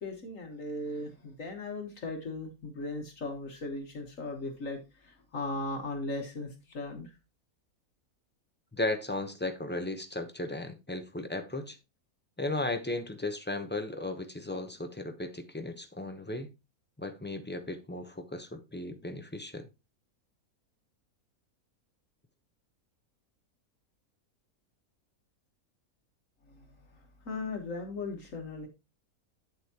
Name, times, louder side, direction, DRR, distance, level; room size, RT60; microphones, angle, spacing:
voice 1, 0.0-7.1 26.5-26.7 26.9-28.7, left 2 dB, 60° left, 1.7 m, -38 dB
voice 2, 8.8-11.8 12.4-16.5 17.0-19.7, left 2 dB, 10° left, 0.7 m, -35 dB
9.1 x 7.9 x 2.9 m
omnidirectional pair, 1.6 m